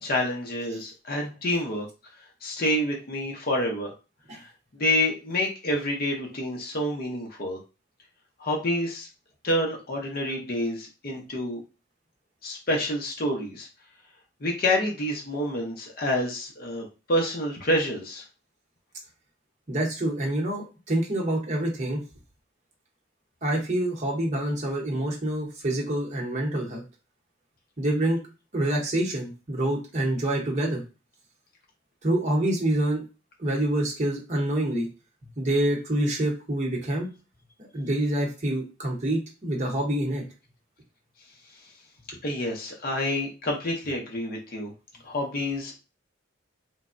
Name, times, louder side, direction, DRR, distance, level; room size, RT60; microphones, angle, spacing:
voice 1, 0.0-1.9 2.4-3.9 4.7-7.6 8.4-9.1 9.4-11.6 12.4-13.7 14.4-18.2 42.2-44.7 45.0-45.8, left 1 dB, 50° left, 0 dB, 0.7 m, -28 dB
voice 2, 19.7-22.0 23.4-26.8 27.8-28.2 28.5-30.8 32.0-33.0 33.4-34.9 35.4-37.1 37.7-40.2, right 1 dB, 40° right, -1 dB, 0.9 m, -26 dB
3.2 x 2.1 x 2.5 m, 0.30 s
head